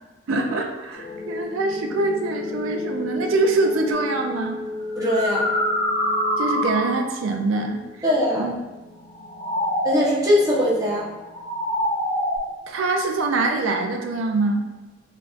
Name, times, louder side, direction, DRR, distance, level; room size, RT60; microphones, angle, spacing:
voice 1, 0.3-4.6 6.4-8.0 8.3-8.5 12.7-14.6, right 3 dB, 85° right, 3 dB, 0.4 m, -24 dB
sound 1, 0.9-11.9, left 3 dB, 65° left, 0.5 m, -35 dB
sound 2, 3.9-4.1 4.9-7.2 9.1-10.3 11.2-12.4, equal, 15° left, 0.6 m, -25 dB
voice 2, 5.0-5.4 8.0-8.5 9.8-11.1, left 1 dB, 15° right, -6 dB, 0.9 m, -20 dB
5.6 x 2.5 x 2.4 m, 1.2 s
head